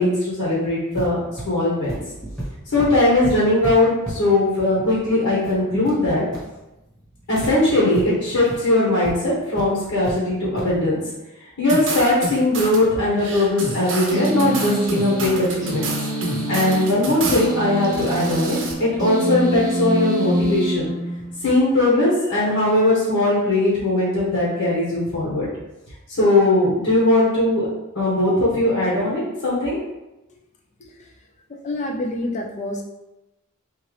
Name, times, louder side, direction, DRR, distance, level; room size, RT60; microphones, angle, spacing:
voice 1, 0.0-2.0 2.7-6.2 7.3-11.0 11.6-15.9 16.5-20.9 21.4-25.5 26.1-27.7 27.9-29.8, left 2 dB, 65° left, -7 dB, 1.1 m, -19 dB
sound 1, 0.9-7.5 7.9-8.0 8.4-8.6 9.0-9.1 9.6-10.2 10.6-10.8, right 1 dB, 5° left, 1.3 m, -34 dB
sound 2, 11.7-12.8 13.2-17.5 17.8-18.7, right 2 dB, 60° right, 0.7 m, -29 dB
sound 3, 14.1-21.5, right 2 dB, 20° right, 0.8 m, -26 dB
voice 2, 31.5-32.8, left 1 dB, 30° left, 0 dB, 0.4 m, -27 dB
3.7 x 2.7 x 3.2 m, 0.97 s
head